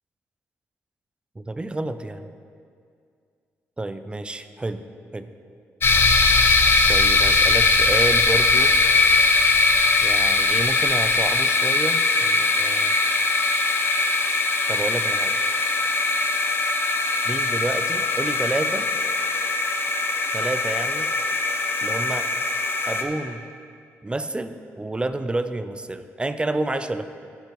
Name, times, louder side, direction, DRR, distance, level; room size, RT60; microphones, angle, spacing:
voice 1, 1.4-2.3 3.8-4.8 5.1-5.3 6.9-8.7 10.0-12.9 14.7-15.3 17.2-18.9 20.3-21.1 21.8-22.3 22.9-23.4 24.0-27.0, right 2 dB, 20° right, 11 dB, 0.5 m, -29 dB
sound 1, 5.8-23.0, left 3 dB, 45° left, 0.9 m, -20 dB
15.0 x 6.7 x 3.1 m, 2.3 s
cardioid pair, 65°, 5 cm